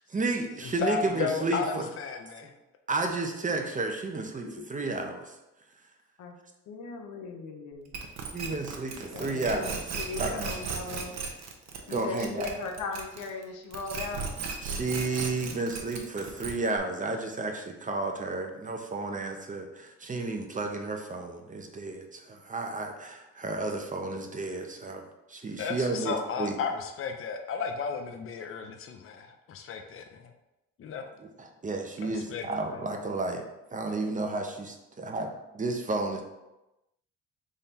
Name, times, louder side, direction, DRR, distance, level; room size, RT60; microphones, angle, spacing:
voice 1, 0.1-1.9 2.9-5.4 8.3-9.8 10.2-10.6 11.9-12.5 14.6-25.0 25.3-26.6 31.2-33.4 33.7-36.2, right 3 dB, 25° right, 3 dB, 0.7 m, -32 dB
voice 2, 0.6-2.5 25.6-30.3 30.8-31.1 32.0-32.5, left 6 dB, 45° left, 5 dB, 0.6 m, -34 dB
voice 3, 4.3-4.7 6.2-6.3 6.7-7.9 8.9-11.1 11.9-14.3, left 4 dB, 80° left, 2 dB, 0.9 m, -38 dB
sound 1, 7.9-13.4 13.7-16.8, right 5 dB, 65° right, 0.8 m, -36 dB
3.8 x 3.3 x 4.1 m, 0.96 s
cardioid pair, 90°, 30 cm